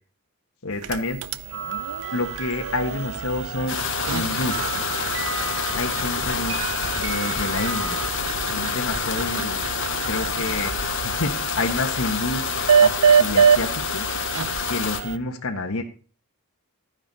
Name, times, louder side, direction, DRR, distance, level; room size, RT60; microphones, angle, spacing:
voice 1, 0.6-1.3 2.1-3.8 4.1-4.8 5.7-6.5 7.0-8.1 8.5-9.6 10.1-10.7 11.0-12.5 12.8-14.1 14.7-15.8, left 2 dB, 75° left, 3 dB, 1.5 m, -28 dB
sound 1, 0.7-15.2, right 6 dB, 80° right, 0.6 m, -26 dB
sound 2, 1.5-8.1, right 7 dB, 55° right, 1.2 m, -35 dB
sound 3, 3.7-15.0, left 7 dB, 60° left, 1.3 m, -28 dB
12.5 x 9.9 x 4.1 m, 0.38 s
head